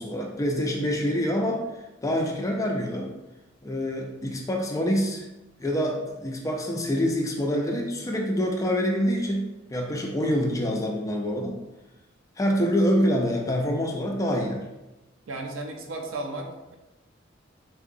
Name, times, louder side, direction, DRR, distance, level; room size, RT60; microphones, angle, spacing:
voice 1, 0.0-1.6 2.0-3.1 3.6-5.2 5.6-11.6 12.4-14.6, equal, 15° left, 1 dB, 0.4 m, -26 dB
voice 2, 15.3-16.8, right 2 dB, 75° right, 3 dB, 0.5 m, -34 dB
3.5 x 2.8 x 2.6 m, 1.0 s
head